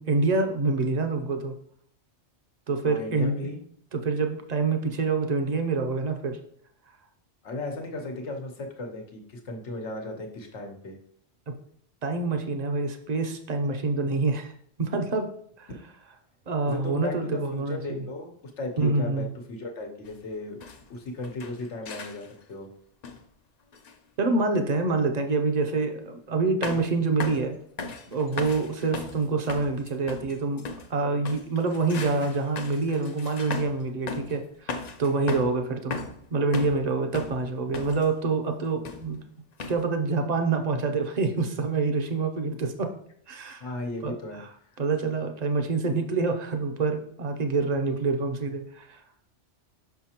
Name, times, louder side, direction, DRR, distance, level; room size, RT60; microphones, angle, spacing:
voice 1, 0.0-1.5 2.7-3.3 3.9-6.4 12.0-14.5 14.8-15.3 15.6-15.7 16.5-18.0 18.8-19.3 24.2-27.5 28.1-30.6 30.9-36.0 36.3-39.2 39.7-42.9 43.3-43.8 44.0-44.2 44.8-49.0, right 3 dB, 45° right, 5 dB, 0.7 m, -26 dB
voice 2, 2.8-3.6 7.4-11.0 15.7-15.8 16.7-20.6 20.9-22.7 35.3-35.4 43.6-44.8, left 2 dB, 85° left, 3 dB, 1.3 m, -36 dB
sound 1, 20.0-20.2 20.6-20.9 21.2-22.4 23.0-23.3 23.7-23.9 25.1-25.3 26.6-26.9 27.2-27.5 27.8-30.9 31.2-33.8 34.1-34.4 34.7-35.6 35.9-36.9 37.1-38.1 38.8-39.2 39.6-39.8, left 4 dB, 45° left, 0.6 m, -37 dB
5.8 x 5.7 x 2.9 m, 0.64 s
omnidirectional pair, 1.2 m